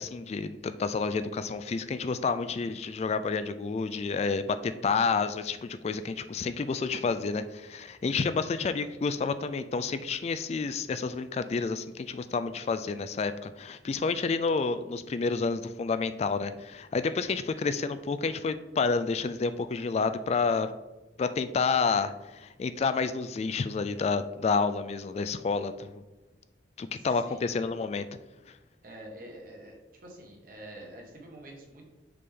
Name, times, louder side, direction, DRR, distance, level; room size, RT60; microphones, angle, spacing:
voice 1, 0.0-20.7 21.2-26.0 26.8-28.1, left 4 dB, 35° left, 12 dB, 0.3 m, -29 dB
voice 2, 27.0-27.5 28.8-29.7 30.0-31.9, right 1 dB, 50° right, -1 dB, 1.7 m, -47 dB
6.7 x 5.1 x 3.7 m, 1.1 s
head